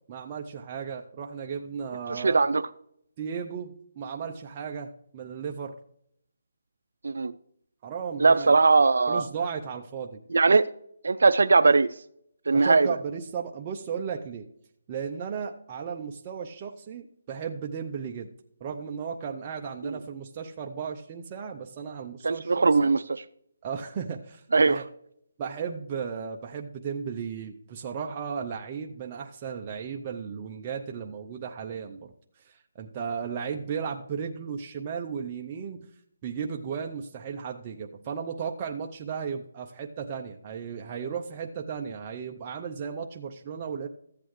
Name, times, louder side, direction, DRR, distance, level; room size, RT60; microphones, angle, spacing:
voice 1, 0.1-2.4 3.2-5.7 7.8-8.5 9.1-10.2 12.5-14.5 14.9-18.3 18.6-22.9 23.6-24.9 25.4-32.1 32.4-35.9 36.2-43.9, right 6 dB, 25° right, 2 dB, 0.5 m, -35 dB
voice 2, 2.1-2.6 7.0-7.3 8.2-9.2 10.3-10.7 11.0-11.9 12.5-12.9 19.8-20.0 22.2-23.2 24.5-24.8, right 4 dB, 75° right, 12 dB, 0.4 m, -20 dB
14.0 x 8.5 x 3.1 m, 0.73 s
hypercardioid pair, 170°, 0 cm